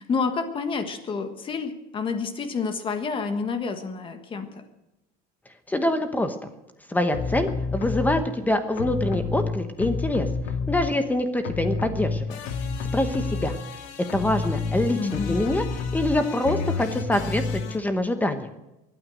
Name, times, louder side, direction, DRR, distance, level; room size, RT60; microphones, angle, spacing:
voice 1, 0.0-4.6 14.9-15.4, left 5 dB, 25° left, 8 dB, 1.5 m, -29 dB
voice 2, 5.7-6.3 6.9-10.3 10.7-12.4 12.9-13.5 14.1-18.5, left 1 dB, 10° left, 8 dB, 1.0 m, -25 dB
sound 1, 7.1-8.3 8.7-11.2 11.4-17.8, left 4 dB, 80° left, 2.3 m, -29 dB
23.5 x 9.2 x 6.3 m, 0.94 s
cardioid pair, 160°, 19 cm